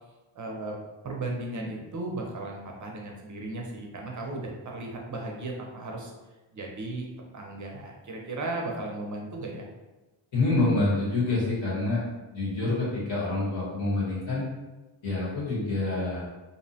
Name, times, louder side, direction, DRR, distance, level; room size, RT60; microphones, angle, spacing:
voice 1, 0.4-0.7 1.0-6.1 6.5-7.1 7.3-9.7, right 2 dB, 40° right, 0 dB, 0.5 m, -35 dB
voice 2, 10.3-12.0 12.3-14.5 15.0-16.3, left 2 dB, 70° left, -7 dB, 1.2 m, -27 dB
2.6 x 2.1 x 2.7 m, 1.1 s
wide cardioid pair, 135°, 48 cm